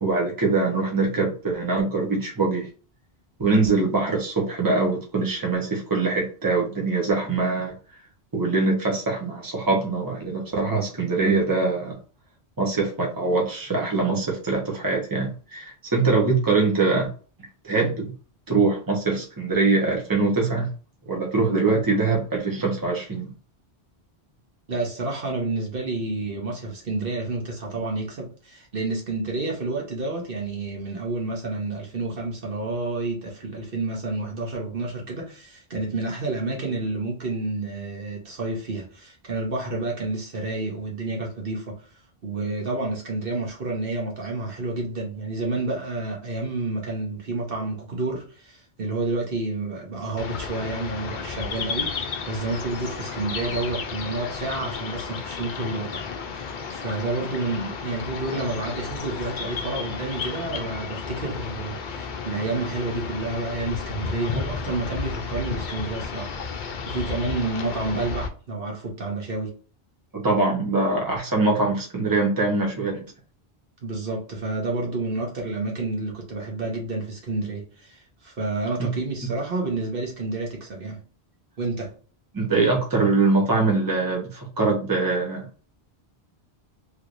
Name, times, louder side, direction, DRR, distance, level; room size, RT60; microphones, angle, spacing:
voice 1, 0.0-2.7 3.4-7.7 8.3-12.0 12.6-17.1 17.6-18.1 18.5-20.7 21.1-23.3 70.1-73.1 78.8-78.9 82.3-85.5, right 3 dB, 20° right, 1.0 m, -23 dB
voice 2, 24.7-69.6 73.8-81.0 81.6-82.0, right 2 dB, 60° right, 1.3 m, -30 dB
sound 1, 50.2-68.3, left 5 dB, 55° left, 0.7 m, -33 dB
3.2 x 3.0 x 2.5 m
omnidirectional pair, 1.1 m